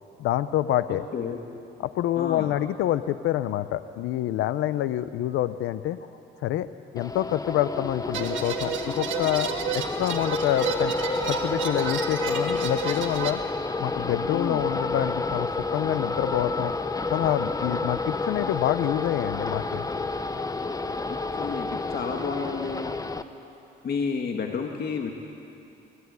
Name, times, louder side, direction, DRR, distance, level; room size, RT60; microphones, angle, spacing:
voice 1, 0.2-1.0 1.8-6.0 6.4-6.7 6.9-10.9 11.3-13.4 13.8-16.7 17.1-19.9, left 13 dB, 90° left, 14 dB, 0.7 m, -27 dB
voice 2, 0.9-1.4 2.2-2.5 14.3-14.6 21.1-22.9 23.8-25.1, left 5 dB, 55° left, 2 dB, 1.9 m, -31 dB
sound 1, 7.0-23.2, left 3 dB, 15° left, 1.0 m, -30 dB
sound 2, 8.1-13.3, right 8 dB, 80° right, 1.9 m, -32 dB
23.0 x 18.5 x 9.5 m, 2.7 s
cardioid pair, 90°, 20 cm